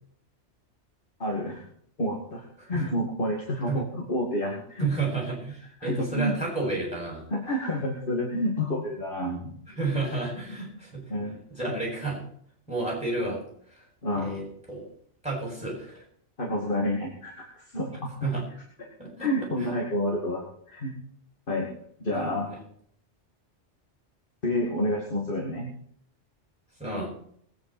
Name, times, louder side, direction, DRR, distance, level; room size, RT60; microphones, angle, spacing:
voice 1, 1.2-1.6 2.0-4.9 5.8-6.4 7.3-9.5 11.1-11.4 11.7-11.8 14.0-14.3 16.4-18.3 18.8-18.9 19.2-20.9 21.5-21.7 22.0-22.5 24.4-25.7, left 1 dB, 50° left, -1 dB, 2.7 m, -29 dB
voice 2, 4.8-7.2 9.8-11.0 11.5-12.2 12.7-13.4 13.7-13.8 14.2-14.9 15.2-16.0 18.2-18.4 19.0-19.7 22.1-22.6 26.8-27.1, right 3 dB, 5° right, -3 dB, 8.0 m, -31 dB
21.0 x 9.6 x 4.5 m, 0.64 s
omnidirectional pair, 1.2 m